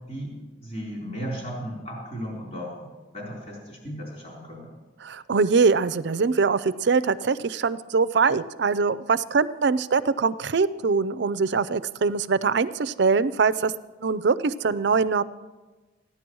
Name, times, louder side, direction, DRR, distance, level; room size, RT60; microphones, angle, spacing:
voice 1, 0.1-2.8 3.1-4.7, equal, 35° left, -3 dB, 4.0 m, -35 dB
voice 2, 5.0-13.7 14.0-15.2, right 4 dB, 65° right, 16 dB, 0.5 m, -23 dB
15.0 x 10.0 x 6.2 m, 1.2 s
head